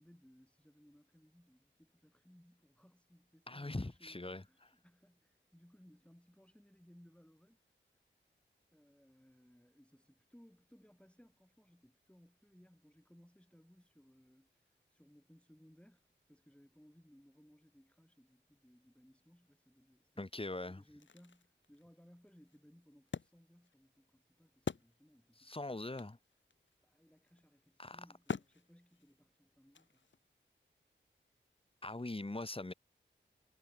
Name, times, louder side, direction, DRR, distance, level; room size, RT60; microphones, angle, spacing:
voice 1, 0.0-7.6 8.7-14.5 14.9-20.3 20.7-25.8 26.8-30.0, equal, 5° left, 7.9 m, -64 dB
voice 2, 3.5-4.4 20.2-20.8 25.4-26.2 27.8-28.0 31.8-32.7, left 2 dB, 30° left, 2.1 m, -41 dB
Wood, 21.0-25.4 25.7-25.8 26.0-30.3, left 5 dB, 70° left, 1.1 m, -46 dB
wide cardioid pair, 50°, 20 cm